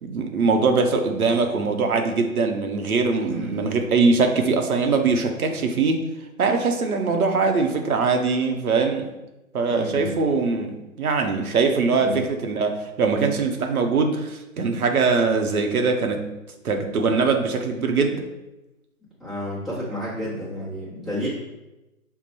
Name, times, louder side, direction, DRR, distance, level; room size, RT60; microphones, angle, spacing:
voice 1, 0.0-6.0 6.4-9.1 9.5-16.3 16.6-18.2, right 4 dB, 80° right, 4 dB, 0.8 m, -22 dB
voice 2, 3.3-3.7 9.7-10.2 11.9-12.2 19.2-21.3, left 1 dB, ahead, -12 dB, 0.7 m, -31 dB
5.4 x 2.1 x 4.1 m, 1.0 s
figure-of-eight pair, 140°, 43 cm